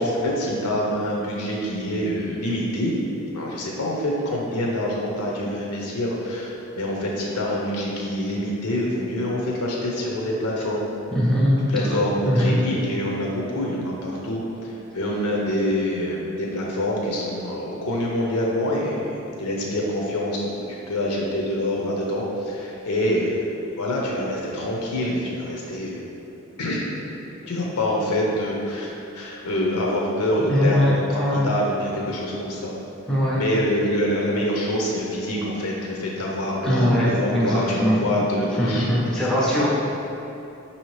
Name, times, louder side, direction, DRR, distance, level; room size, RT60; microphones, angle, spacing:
voice 1, 0.0-2.9 3.3-10.8 11.7-23.5 23.8-26.0 26.6-26.9 27.4-32.7 33.4-38.9, left 1 dB, 85° left, -2 dB, 0.6 m, -26 dB
voice 2, 11.1-12.5 30.4-31.5 33.1-33.4 36.6-38.0 38.6-39.7, equal, 5° left, -6 dB, 0.4 m, -21 dB
5.0 x 2.7 x 3.1 m, 2.9 s
head